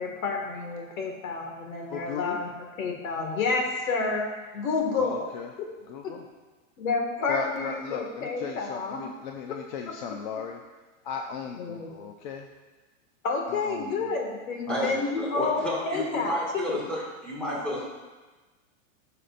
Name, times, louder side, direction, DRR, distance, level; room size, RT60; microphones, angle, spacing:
voice 1, 0.0-2.5 2.8-4.3 4.5-5.3 5.6-5.7 6.0-6.1 6.8-9.0 11.6-11.9 13.2-16.8, left 4 dB, 90° left, 2 dB, 1.9 m, -29 dB
voice 2, 1.9-2.4 5.0-5.5 5.9-6.2 7.3-10.6 11.0-12.5 13.5-14.1 14.7-15.0, left 7 dB, 40° left, 3 dB, 0.4 m, -36 dB
voice 3, 14.7-17.8, equal, 5° left, -6 dB, 1.7 m, -31 dB
12.5 x 6.7 x 2.5 m, 1.3 s
supercardioid pair, 165°, 40 cm